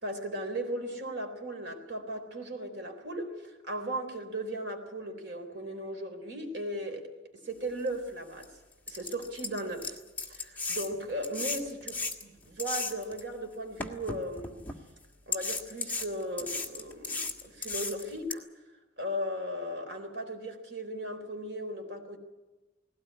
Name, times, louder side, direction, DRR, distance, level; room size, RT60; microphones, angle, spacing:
voice 1, 0.0-7.1 7.4-8.5 8.9-10.0 10.3-11.8 12.5-14.6 15.3-18.5 19.0-22.2, right 1 dB, 70° right, 4 dB, 3.8 m, -37 dB
sound 1, 7.9-8.0 8.4-8.5 8.9-13.2 13.8-14.8 15.3-18.3, left 3 dB, 10° left, 1.7 m, -35 dB
19.5 x 17.5 x 9.9 m, 1.2 s
head